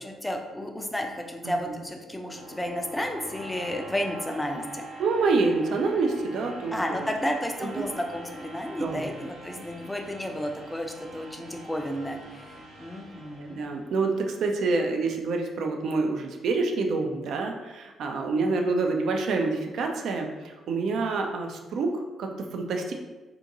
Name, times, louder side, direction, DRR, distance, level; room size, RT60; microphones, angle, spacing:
voice 1, 0.0-4.8 6.7-13.6, equal, 10° left, 3 dB, 0.4 m, -32 dB
sound 1, 1.2-14.2, right 1 dB, 90° right, 0.7 m, -44 dB
voice 2, 5.0-7.1 7.6-7.9 8.8-9.1 13.4-22.9, right 3 dB, 60° right, 3 dB, 0.3 m, -27 dB
2.5 x 2.5 x 2.7 m, 1.2 s
figure-of-eight pair, 40°, 0 cm